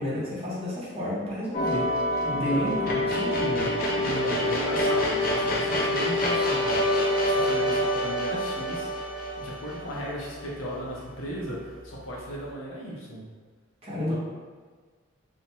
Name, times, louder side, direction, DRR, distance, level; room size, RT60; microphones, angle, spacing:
voice 1, 0.0-1.8 2.2-3.7 13.8-14.1, equal, 30° right, -7 dB, 0.7 m, -31 dB
sound 1, 1.5-10.8, left 1 dB, 45° left, 0.4 m, -26 dB
voice 2, 2.3-3.2 3.9-8.9 9.4-13.3 13.9-14.2, equal, 90° left, -4 dB, 0.7 m, -36 dB
2.5 x 2.1 x 3.0 m, 1.5 s
head